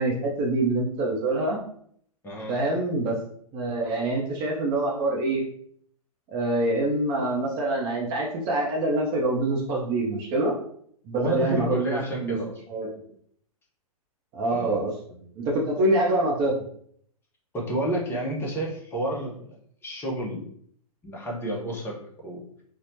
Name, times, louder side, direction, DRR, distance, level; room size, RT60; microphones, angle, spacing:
voice 1, 0.0-1.6 2.5-3.2 3.5-5.5 6.3-10.5 11.1-12.4 12.7-12.9 14.3-16.5, right 2 dB, 25° right, -2 dB, 0.6 m, -25 dB
voice 2, 2.2-2.6 11.2-12.5 14.5-14.8 17.5-20.4 21.0-22.0 22.2-22.4, right 1 dB, 10° left, -2 dB, 0.7 m, -30 dB
4.1 x 2.1 x 2.6 m, 0.63 s
figure-of-eight pair, 110°, 20 cm